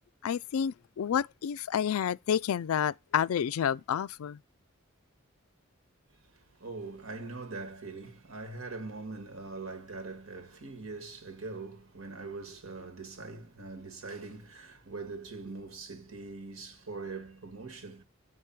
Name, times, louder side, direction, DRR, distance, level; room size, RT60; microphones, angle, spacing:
voice 1, 0.2-4.4, left 8 dB, 90° left, 0.3 m, -29 dB
voice 2, 6.1-18.0, right 3 dB, 85° right, 1.5 m, -42 dB
7.3 x 4.7 x 5.8 m
head